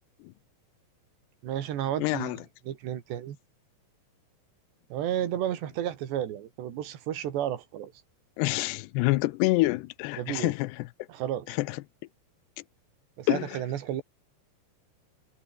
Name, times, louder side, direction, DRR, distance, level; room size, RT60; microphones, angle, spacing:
voice 1, 1.4-2.4 2.7-3.4 4.9-7.9 10.2-10.5 11.1-11.6 13.2-14.0, right 11 dB, 80° right, 4.3 m, -32 dB
voice 2, 2.0-2.4 8.4-10.9 11.5-11.8 13.3-13.6, left 20 dB, 80° left, 2.7 m, -27 dB
omnidirectional pair, 5.0 m